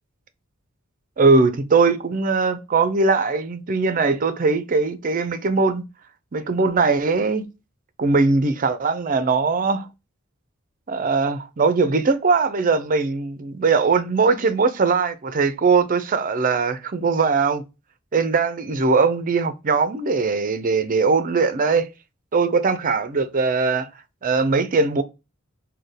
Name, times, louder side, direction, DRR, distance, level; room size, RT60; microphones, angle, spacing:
voice 1, 1.2-5.8 6.3-7.5 8.0-9.9 10.9-17.6 18.1-21.9 22.3-23.9 24.2-25.0, right 4 dB, 40° right, 0.5 m, -20 dB
4.3 x 2.2 x 3.3 m
head